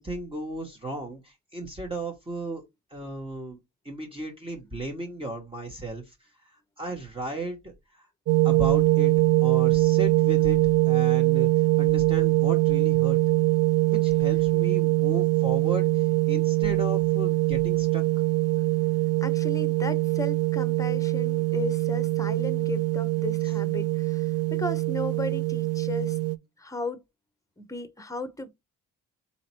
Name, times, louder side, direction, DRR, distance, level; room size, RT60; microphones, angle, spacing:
voice 1, 0.0-2.6 2.9-3.6 3.8-8.1 8.4-9.1 9.4-13.2 13.9-18.0, right 1 dB, 20° right, 1.4 m, -35 dB
sound 1, 8.3-26.4, right 20 dB, 55° right, 0.5 m, -23 dB
voice 2, 19.2-26.2 26.6-27.0 27.6-28.5, left 3 dB, 10° left, 0.9 m, -35 dB
4.2 x 2.9 x 4.4 m
cardioid pair, 90°, 30 cm